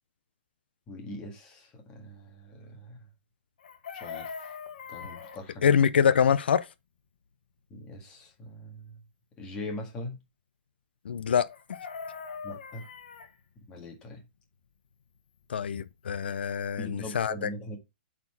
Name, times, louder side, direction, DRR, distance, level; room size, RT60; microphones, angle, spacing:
voice 1, 0.9-3.0 3.9-4.3 4.9-5.7 7.7-9.0 9.4-10.2 12.4-12.8 13.6-14.2 16.8-17.8, left 1 dB, 15° left, 1.8 m, -41 dB
Chicken rooster, 3.6-5.4 11.5-13.3 15.5-15.6 15.9-16.2, left 6 dB, 65° left, 1.6 m, -41 dB
voice 2, 5.6-6.7 11.1-11.5 15.5-17.5, left 7 dB, 85° left, 0.6 m, -25 dB
8.4 x 4.4 x 4.2 m
hypercardioid pair, 180°, 5 cm